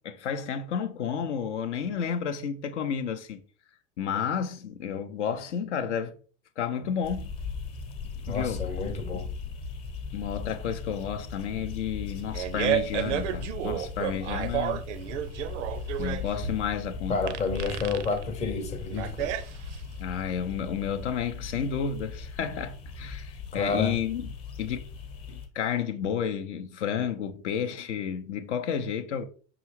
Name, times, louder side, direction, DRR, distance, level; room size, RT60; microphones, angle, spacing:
voice 1, 0.0-3.4 4.0-6.1 6.6-7.3 8.2-8.6 9.1-9.2 10.1-14.9 16.0-17.2 20.0-24.3 24.6-24.8 25.3-29.2, left 7 dB, 65° left, 0.6 m, -31 dB
sound 1, 7.0-25.5, left 5 dB, 35° left, 0.9 m, -38 dB
voice 2, 8.3-9.3 17.1-19.3 23.5-24.0, left 4 dB, 20° left, 0.6 m, -30 dB
Fart, 12.0-20.0, right 11 dB, 65° right, 0.5 m, -32 dB
5.5 x 2.4 x 3.0 m
figure-of-eight pair, 85°, 39 cm